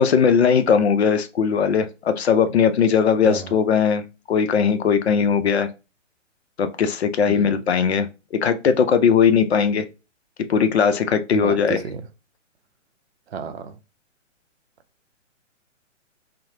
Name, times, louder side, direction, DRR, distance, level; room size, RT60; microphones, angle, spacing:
voice 1, 0.0-5.7 6.6-8.1 8.4-9.9 10.5-11.8, left 6 dB, 60° left, 0.5 m, -19 dB
voice 2, 3.2-3.6 7.3-7.6 11.3-12.0 13.3-13.7, right 6 dB, 55° right, 0.5 m, -31 dB
2.9 x 2.0 x 2.7 m
figure-of-eight pair, 125°, 38 cm